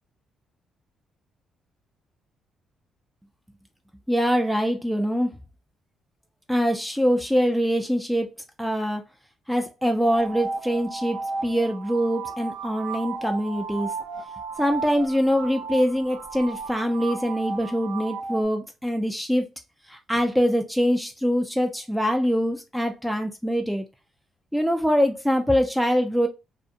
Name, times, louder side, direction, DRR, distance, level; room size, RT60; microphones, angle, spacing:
voice 1, 4.1-5.3 6.5-8.3 8.6-9.0 9.5-13.9 14.6-19.5 19.9-23.9 24.5-26.3, equal, ahead, 0.4 m, -24 dB
sound 1, 10.0-18.5, right 4 dB, 90° right, 0.5 m, -34 dB
2.4 x 2.0 x 2.6 m
cardioid pair, 90°, 0 cm